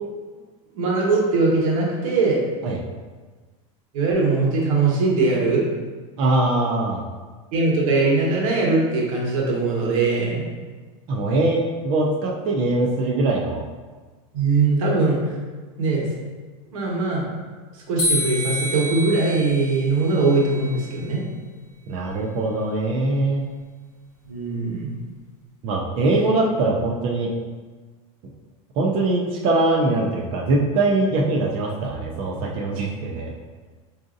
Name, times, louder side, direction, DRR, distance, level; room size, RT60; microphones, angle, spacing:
voice 1, 0.8-2.4 3.9-5.6 7.5-10.5 14.3-15.2 15.8-16.1 16.7-17.3 17.9-21.2 24.2-24.9, right 3 dB, 85° right, -3 dB, 1.1 m, -21 dB
voice 2, 6.2-7.0 11.1-13.6 21.9-23.4 25.6-27.3 28.8-33.3, right 2 dB, 30° right, -2 dB, 0.4 m, -22 dB
sound 1, 18.0-21.1, equal, 15° left, 1.1 m, -28 dB
4.7 x 2.6 x 2.5 m, 1.4 s
supercardioid pair, 165°, 17 cm